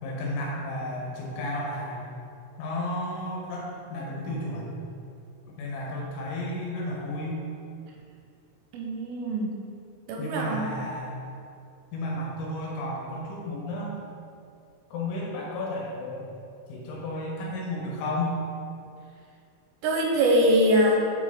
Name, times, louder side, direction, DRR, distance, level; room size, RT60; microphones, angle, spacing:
voice 1, 0.0-2.2 2.6-4.8 5.6-7.5 10.2-11.2 11.9-14.0 14.9-16.3 16.7-18.3, left 1 dB, 75° left, -3 dB, 3.2 m, -33 dB
voice 2, 8.7-9.5 10.1-10.8 19.8-21.1, equal, 85° right, 0 dB, 3.2 m, -23 dB
9.1 x 4.0 x 3.6 m, 2.5 s
omnidirectional pair, 5.9 m